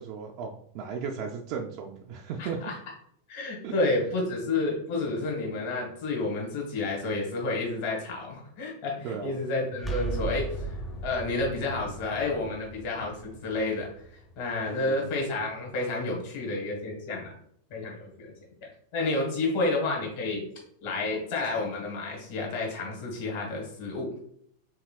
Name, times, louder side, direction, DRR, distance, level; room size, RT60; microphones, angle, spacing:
voice 1, 0.0-2.6 3.6-3.7 9.0-9.4 14.9-15.1, right 6 dB, 45° right, 1 dB, 0.4 m, -35 dB
voice 2, 2.4-2.7 3.3-10.7 11.0-13.9 14.4-17.3 17.7-18.3 18.6-20.4 20.8-24.1, left 2 dB, 50° left, -1 dB, 1.3 m, -30 dB
sound 1, 9.8-15.5, right 3 dB, 10° left, 0.7 m, -37 dB
4.7 x 3.4 x 2.3 m, 0.66 s
figure-of-eight pair, 90°, 0 cm